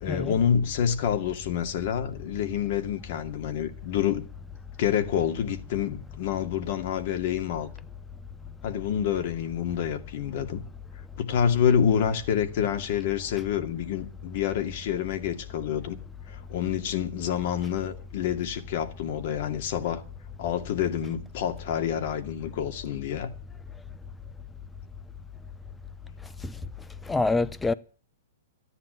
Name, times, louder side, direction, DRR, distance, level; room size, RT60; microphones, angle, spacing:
voice 1, 0.0-4.2 4.8-7.7 8.6-10.6 11.2-16.0 16.3-20.0 20.4-23.3, left 8 dB, 55° left, 2.4 m, -27 dB
voice 2, 27.1-27.7, left 3 dB, 5° left, 0.8 m, -26 dB
14.0 x 9.9 x 9.2 m
hypercardioid pair, 145°, 0 cm